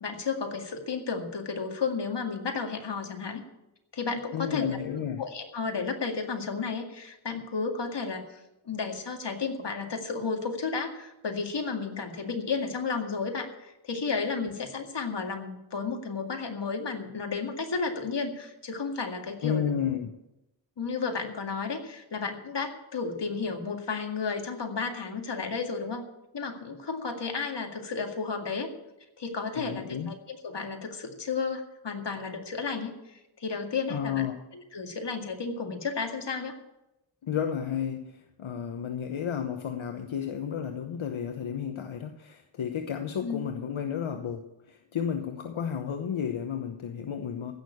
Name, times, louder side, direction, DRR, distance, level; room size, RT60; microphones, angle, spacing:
voice 1, 0.0-3.4 3.9-19.7 20.8-26.0 26.3-28.7 29.2-34.2 34.5-36.6 43.2-43.5, left 4 dB, 60° left, 4 dB, 2.2 m, -33 dB
voice 2, 4.3-5.2 19.4-20.1 29.5-30.1 33.9-34.4 37.2-47.5, left 8 dB, 80° left, 6 dB, 1.0 m, -32 dB
16.0 x 6.6 x 8.5 m, 0.92 s
wide cardioid pair, 90°, 47 cm